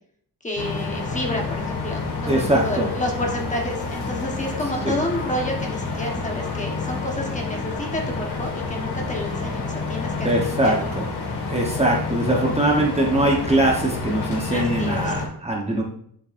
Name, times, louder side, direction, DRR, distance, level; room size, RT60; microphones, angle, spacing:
voice 1, 0.4-10.9 14.5-15.1, left 1 dB, 20° left, 0 dB, 1.2 m, -30 dB
sound 1, 0.6-15.3, left 4 dB, 75° left, 2.1 m, -29 dB
voice 2, 2.3-2.9 4.8-4.9 10.2-11.0 11.5-15.8, right 1 dB, 15° right, -2 dB, 1.0 m, -22 dB
10.0 x 7.2 x 2.6 m, 0.66 s
wide cardioid pair, 180°, 41 cm